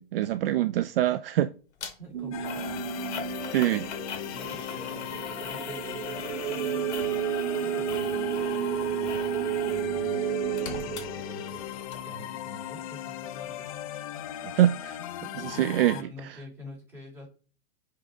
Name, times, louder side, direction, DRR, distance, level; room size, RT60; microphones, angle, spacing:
voice 1, 0.0-1.5 3.5-3.9 14.5-15.0 15.3-16.0, right 13 dB, 60° right, 0.5 m, -24 dB
sound 1, 1.8-1.9 2.4-9.9 10.2-11.6 11.9-12.0, left 6 dB, 80° left, 2.0 m, -41 dB
voice 2, 2.0-2.8 4.3-7.3 7.6-13.7 15.4-17.3, left 1 dB, 5° right, 3.1 m, -47 dB
sound 2, 2.1-11.9, right 10 dB, 80° right, 1.1 m, -32 dB
sound 3, 2.3-16.0, left 12 dB, 35° left, 0.4 m, -38 dB
7.5 x 3.9 x 4.9 m
supercardioid pair, 170°, 33 cm